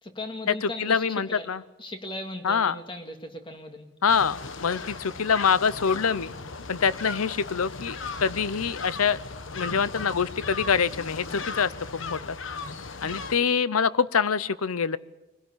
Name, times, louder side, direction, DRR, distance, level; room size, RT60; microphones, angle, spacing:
voice 1, 0.0-1.0 1.3-1.5 1.8-3.9 13.0-13.1, left 2 dB, 25° left, 6 dB, 2.1 m, -37 dB
voice 2, 0.6-1.6 2.4-2.7 4.0-6.3 6.7-9.2 9.5-12.4 13.0-15.0, left 6 dB, 90° left, 18 dB, 0.7 m, -25 dB
sound 1, 4.1-13.4, left 4 dB, 60° left, 1.2 m, -37 dB
22.5 x 16.5 x 9.7 m, 1.0 s
head